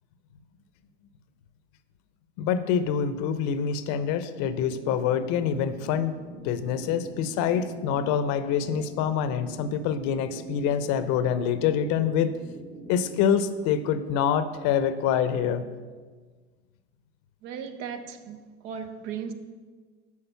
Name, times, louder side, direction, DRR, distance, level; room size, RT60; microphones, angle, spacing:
voice 1, 2.4-6.1 6.4-12.3 12.9-15.7, left 8 dB, 60° left, 0.8 m, -26 dB
sound 1, 4.3-13.4, right 2 dB, 85° right, 2.4 m, -44 dB
voice 2, 17.4-19.3, right 7 dB, 70° right, 1.0 m, -37 dB
8.4 x 5.2 x 6.9 m
supercardioid pair, 105°, 33 cm